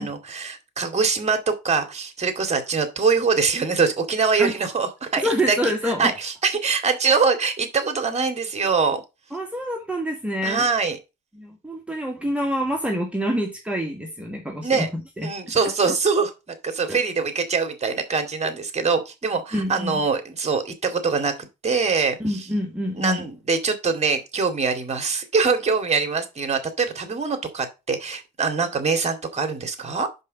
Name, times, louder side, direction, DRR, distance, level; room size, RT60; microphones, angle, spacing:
voice 1, 0.0-9.0 10.4-11.0 14.6-14.9 15.2-22.4 22.9-30.1, right 4 dB, 35° right, 7 dB, 2.4 m, -23 dB
voice 2, 5.2-6.1 9.3-10.7 11.4-15.5 16.9-17.0 19.5-20.0 22.2-23.2, equal, 5° right, 1 dB, 1.9 m, -27 dB
5.4 x 5.2 x 6.6 m, 0.26 s
cardioid pair, 90°, 20 cm